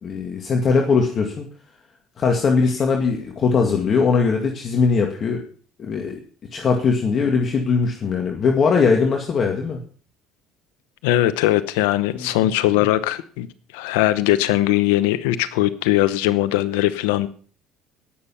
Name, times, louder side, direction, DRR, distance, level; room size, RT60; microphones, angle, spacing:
voice 1, 0.0-1.5 2.2-5.4 5.8-6.1 6.5-9.8 12.1-12.5, left 5 dB, 40° left, 2 dB, 2.1 m, -20 dB
voice 2, 11.0-13.5 13.7-17.3, left 15 dB, 90° left, 13 dB, 0.8 m, -20 dB
18.0 x 7.1 x 5.7 m, 0.43 s
supercardioid pair, 100°, 0 cm